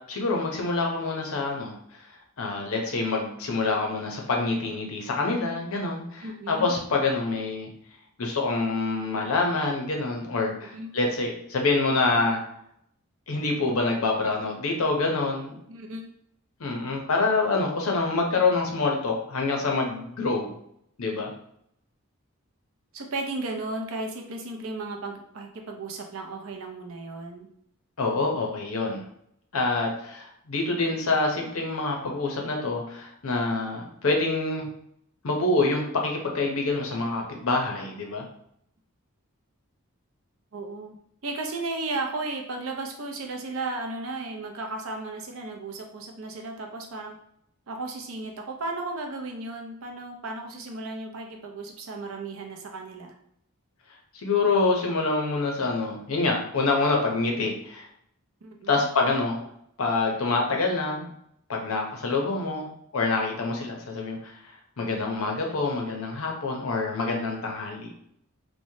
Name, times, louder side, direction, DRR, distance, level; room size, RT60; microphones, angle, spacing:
voice 1, 0.1-1.8 2.4-7.7 8.2-12.4 13.3-15.6 16.6-20.5 21.0-21.3 28.0-29.0 29.5-34.7 35.2-38.3 54.2-57.8 58.7-59.4 59.8-61.1 61.5-64.4 64.8-67.9, left 3 dB, 70° left, 1 dB, 0.7 m, -26 dB
voice 2, 6.2-6.7 10.5-11.0 15.7-16.1 22.9-27.5 40.5-40.9 41.2-47.1 47.7-53.1 58.4-58.9, right 2 dB, 65° right, 2 dB, 0.5 m, -35 dB
3.1 x 2.1 x 2.7 m, 0.71 s
head